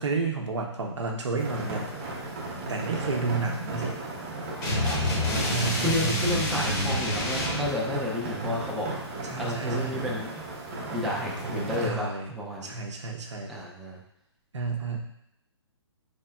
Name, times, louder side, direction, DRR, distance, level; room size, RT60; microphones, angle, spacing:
voice 1, 0.0-1.9 2.7-4.0 5.5-7.1 9.3-10.1 11.5-12.4 12.6-13.6 14.5-15.0, right 4 dB, 75° right, 1 dB, 0.8 m, -31 dB
sound 1, 1.4-11.9, right 2 dB, 30° right, 0.9 m, -35 dB
sound 2, 4.6-7.7, left 1 dB, 35° left, 0.8 m, -28 dB
voice 2, 4.8-8.9 9.4-10.4 10.9-12.7 13.5-14.0, left 1 dB, ahead, -5 dB, 0.4 m, -32 dB
4.1 x 3.4 x 2.2 m, 0.80 s
figure-of-eight pair, 135°, 15 cm